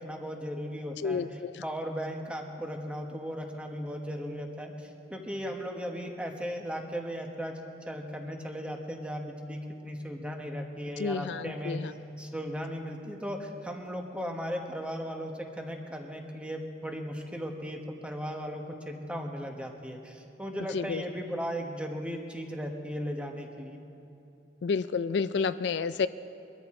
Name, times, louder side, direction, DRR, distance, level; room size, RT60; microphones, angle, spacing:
voice 1, 0.0-7.6 7.8-11.8 12.2-23.8, equal, 5° right, 2 dB, 1.2 m, -37 dB
voice 2, 1.0-1.5 11.0-11.9 20.7-21.0 24.6-26.1, left 5 dB, 70° left, 13 dB, 0.4 m, -30 dB
22.5 x 13.5 x 3.7 m, 2.8 s
head